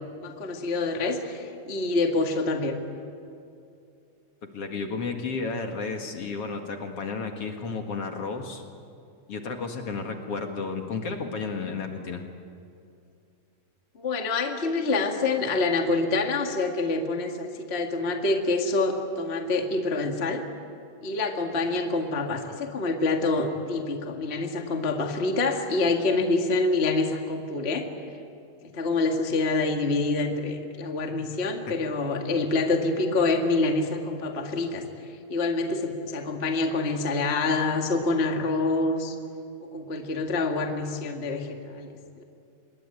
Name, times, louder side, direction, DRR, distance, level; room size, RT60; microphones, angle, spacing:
voice 1, 0.2-2.8 14.0-20.4 21.0-27.9 28.7-34.8 35.3-39.2 39.7-42.2, left 3 dB, 25° left, 3 dB, 1.7 m, -26 dB
voice 2, 4.5-8.6 9.3-12.3 33.2-33.3, left 4 dB, 50° left, 4 dB, 2.5 m, -32 dB
26.0 x 22.0 x 9.2 m, 2.5 s
omnidirectional pair, 3.7 m